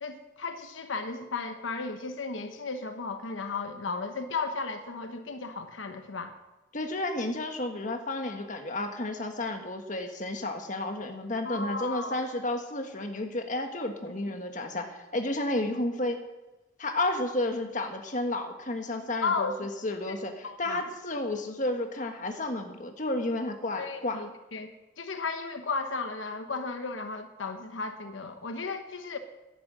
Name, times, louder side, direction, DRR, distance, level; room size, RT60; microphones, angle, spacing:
voice 1, 0.0-6.3 11.4-12.2 19.2-19.7 20.1-20.2 20.4-20.8 23.8-29.2, left 4 dB, 85° left, 7 dB, 1.0 m, -34 dB
voice 2, 6.7-16.2 16.8-24.2, left 2 dB, 40° left, 5 dB, 1.4 m, -32 dB
10.5 x 10.5 x 7.6 m, 1.1 s
head